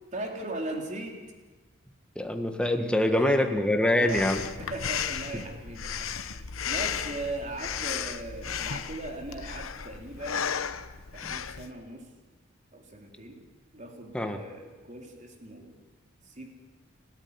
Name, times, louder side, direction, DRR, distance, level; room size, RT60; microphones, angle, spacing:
voice 1, 0.1-1.2 3.0-3.6 3.9-10.5 11.1-12.1 12.7-13.4 13.7-15.8 16.3-16.5, right 2 dB, 35° right, 2 dB, 3.6 m, -39 dB
voice 2, 2.2-4.4 11.2-11.3 14.1-14.4, left 1 dB, 5° left, 5 dB, 1.6 m, -25 dB
Breathing, 4.1-11.7, left 7 dB, 85° left, 1.0 m, -34 dB
30.0 x 13.5 x 9.7 m, 1.3 s
head